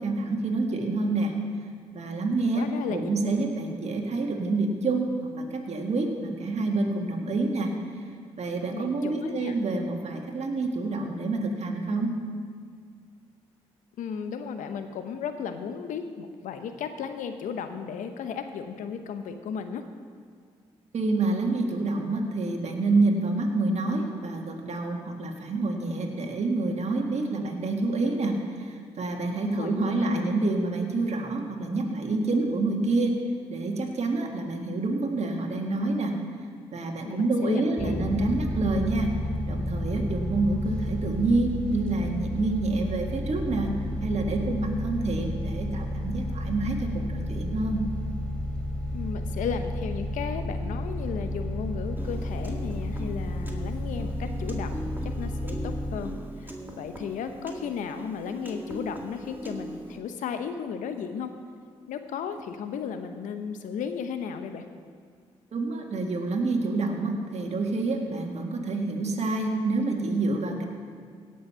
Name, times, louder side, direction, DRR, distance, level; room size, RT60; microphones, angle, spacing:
voice 1, 0.0-1.3 1.9-5.1 5.3-7.7 8.4-12.1 20.9-33.2 33.5-36.2 36.7-39.2 39.5-43.7 44.0-47.8 65.5-70.7, right 2 dB, 55° right, 2 dB, 1.9 m, -27 dB
voice 2, 2.4-3.1 8.7-9.6 14.0-19.8 29.4-30.3 37.0-38.0 48.9-61.3 61.9-64.6, left 6 dB, 80° left, 8 dB, 0.9 m, -35 dB
sound 1, 37.8-56.0, left 1 dB, 10° left, 2.8 m, -32 dB
Piano, 52.0-60.0, equal, 15° right, 2.1 m, -40 dB
17.0 x 6.5 x 5.6 m, 2.1 s
supercardioid pair, 45°, 13 cm